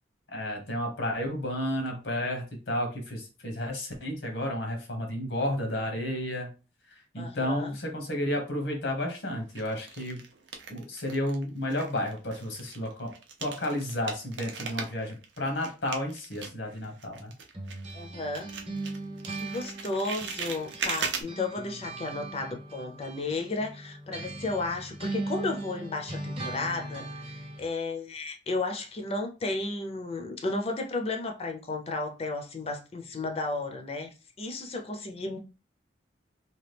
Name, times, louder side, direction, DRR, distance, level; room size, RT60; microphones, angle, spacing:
voice 1, 0.3-6.5 7.1-10.2 10.7-13.1 13.4-17.3, left 1 dB, 80° left, 1.0 m, -32 dB
voice 2, 7.2-7.7 17.9-18.5 19.3-35.4, left 2 dB, 35° left, 0.5 m, -33 dB
sound 1, 8.4-9.0 9.6-11.4 11.7-18.1 18.3-21.2, right 5 dB, 90° right, 0.5 m, -38 dB
sound 2, 17.5-21.0 21.3-27.7, right 2 dB, 35° right, 0.7 m, -39 dB
2.9 x 2.3 x 3.3 m
head